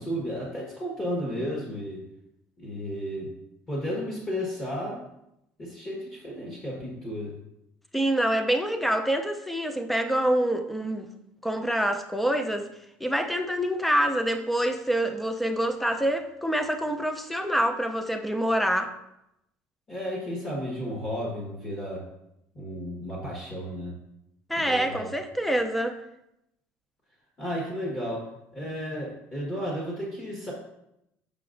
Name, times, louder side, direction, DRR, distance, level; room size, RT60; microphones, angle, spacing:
voice 1, 0.0-2.0 2.6-3.3 3.7-5.0 5.6-7.3 19.9-22.0 22.5-24.0 24.6-25.0 27.4-28.2 28.5-30.5, equal, 30° left, -3 dB, 1.4 m, -33 dB
voice 2, 7.9-11.1 11.4-12.7 13.0-18.9 24.5-26.0, right 1 dB, ahead, 6 dB, 0.5 m, -26 dB
6.8 x 5.8 x 2.5 m, 0.83 s
cardioid pair, 130°, 5 cm